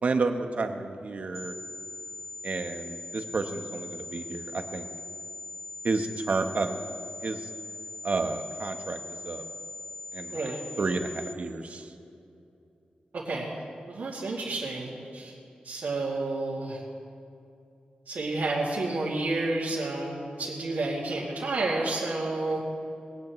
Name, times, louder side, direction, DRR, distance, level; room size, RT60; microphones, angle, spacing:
voice 1, 0.0-1.5 2.4-4.9 5.8-6.8 7.2-7.5 8.0-9.4 10.1-11.9, right 3 dB, 55° right, 6 dB, 1.1 m, -31 dB
sound 1, 1.3-11.3, left 3 dB, 5° left, 1.2 m, -41 dB
voice 2, 13.1-13.6 13.9-15.3 15.6-16.8 18.1-22.6, right 2 dB, 70° right, -6 dB, 2.5 m, -30 dB
21.5 x 17.5 x 3.2 m, 2.6 s
wide cardioid pair, 115°, 3 cm